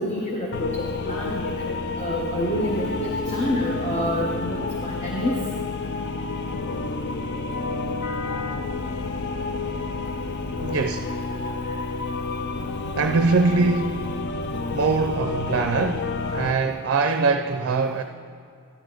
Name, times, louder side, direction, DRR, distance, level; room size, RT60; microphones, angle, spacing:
voice 1, 0.0-5.4, equal, 30° left, 0.9 m, -28 dB
sound 1, 0.5-16.5, left 3 dB, 50° left, 0.5 m, -30 dB
voice 2, 10.6-11.2 13.0-14.2 14.7-18.0, right 4 dB, 55° right, 0.5 m, -23 dB
13.0 x 10.5 x 3.8 m
head